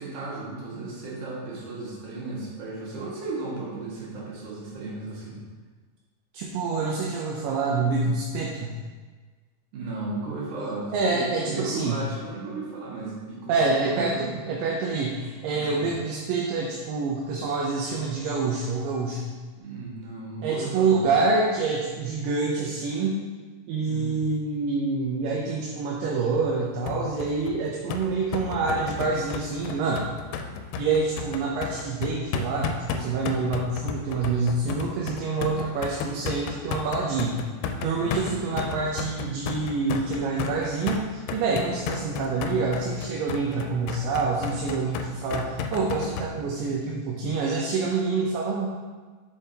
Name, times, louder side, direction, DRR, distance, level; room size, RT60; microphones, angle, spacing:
voice 1, 0.0-5.4 9.7-14.3 15.5-15.9 19.6-21.1 23.8-24.2 37.8-38.5, right 3 dB, 65° right, -5 dB, 2.9 m, -35 dB
voice 2, 6.3-8.7 10.9-12.0 13.5-19.3 20.4-23.2 23.7-30.0 30.8-37.4 37.8-48.7, right 4 dB, 80° right, -2 dB, 2.3 m, -27 dB
sound 1, 26.9-46.3, left 6 dB, 90° left, 2.3 m, -32 dB
6.8 x 6.5 x 2.8 m, 1.4 s
omnidirectional pair, 4.0 m